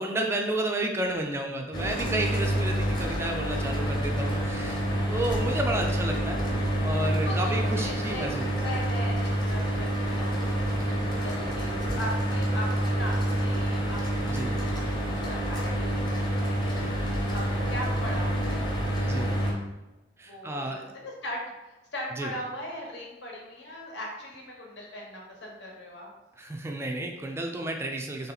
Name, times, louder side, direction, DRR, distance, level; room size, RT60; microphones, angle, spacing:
voice 1, 0.0-4.8 5.1-6.4 6.8-8.7 14.3-14.5 19.1-19.3 20.2-20.8 22.2-22.3 26.4-28.3, right 1 dB, 15° right, 2 dB, 0.4 m, -31 dB
Mechanical fan, 1.7-19.5, equal, 25° left, 0.9 m, -28 dB
voice 2, 7.2-8.3 8.5-12.7 13.0-14.6 15.0-17.0 17.3-19.5 20.3-26.1, equal, 75° left, -2 dB, 1.1 m, -39 dB
3.4 x 2.9 x 3.9 m, 1.1 s
head